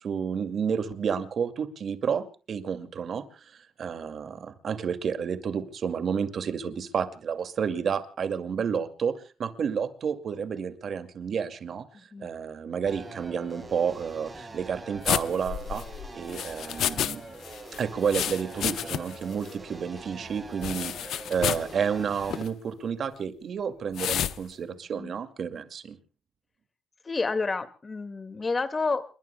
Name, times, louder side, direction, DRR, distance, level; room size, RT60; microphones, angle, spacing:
voice 1, 0.0-3.5 3.8-9.1 9.4-11.8 12.2-15.8 16.1-17.2 17.8-26.0, right 7 dB, 55° right, 10 dB, 2.3 m, -30 dB
voice 2, 11.9-12.3 24.9-25.1 27.0-29.0, left 3 dB, 30° left, 11 dB, 2.0 m, -30 dB
sound 1, 12.9-22.4, right 2 dB, 25° right, 5.7 m, -44 dB
sound 2, 15.0-17.2 17.4-19.2 19.5-19.6 20.6-21.7 22.2-22.5 23.9-24.4, left 11 dB, 75° left, 0.8 m, -30 dB
29.5 x 22.0 x 2.2 m, 0.36 s
cardioid pair, 90°, 0 cm